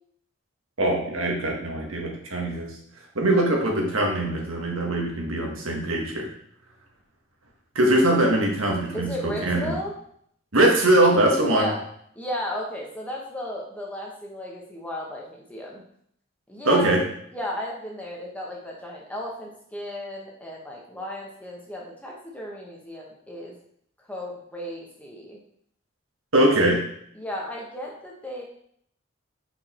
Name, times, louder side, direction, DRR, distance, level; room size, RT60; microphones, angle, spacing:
voice 1, 0.8-2.8 3.1-6.3 7.7-9.8 10.5-11.7 16.6-17.0 26.3-26.8, right 1 dB, 85° right, 0 dB, 1.6 m, -22 dB
voice 2, 8.9-9.9 11.5-11.8 12.1-15.8 16.5-16.9 17.3-23.6 24.1-25.4 26.4-26.7 27.1-28.4, left 1 dB, 5° left, -3 dB, 1.2 m, -34 dB
5.2 x 4.7 x 4.4 m, 0.67 s
head